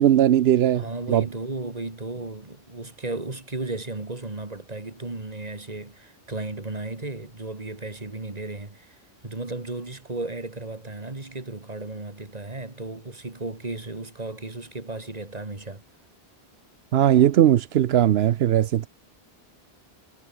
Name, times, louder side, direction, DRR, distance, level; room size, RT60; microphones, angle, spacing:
voice 1, 0.0-1.2 16.9-18.9, right 11 dB, 80° right, 0.9 m, -19 dB
voice 2, 0.7-9.0 9.2-15.8, right 2 dB, 40° right, 2.7 m, -34 dB
omnidirectional pair, 1.1 m